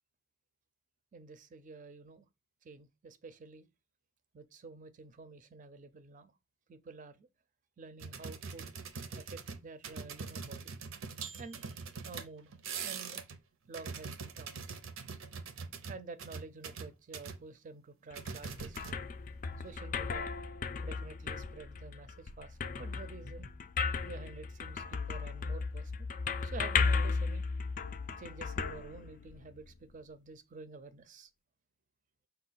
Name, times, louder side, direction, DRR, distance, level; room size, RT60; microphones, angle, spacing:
voice 1, 1.1-2.3 2.6-3.7 4.3-6.3 6.7-7.3 7.8-8.7 9.1-10.7 11.4-11.6 12.0-12.5 12.8-13.2 13.7-14.6 15.9-19.0 19.6-20.3 20.8-23.5 24.0-25.9 26.4-27.4 28.2-31.3, right 4 dB, 40° right, 0.4 m, -49 dB
sound 1, 8.0-13.4 13.7-17.4 18.1-19.2 19.5-19.7, right 5 dB, 90° right, 0.6 m, -43 dB
sound 2, 18.1-29.6, left 4 dB, 40° left, 0.4 m, -35 dB
5.5 x 2.2 x 3.9 m
head